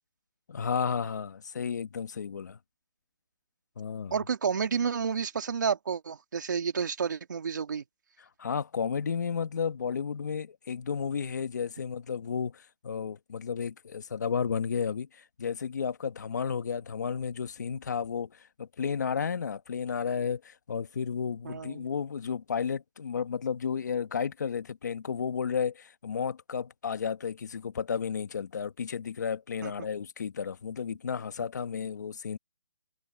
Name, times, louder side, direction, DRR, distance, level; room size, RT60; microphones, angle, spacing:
voice 1, 0.5-2.6 3.8-4.1 8.4-18.3 18.6-32.4, left 6 dB, 50° left, 1.6 m, -32 dB
voice 2, 4.1-7.8 21.4-21.9 29.6-29.7, right 6 dB, 55° right, 2.5 m, -30 dB
hypercardioid pair, 170°, 12 cm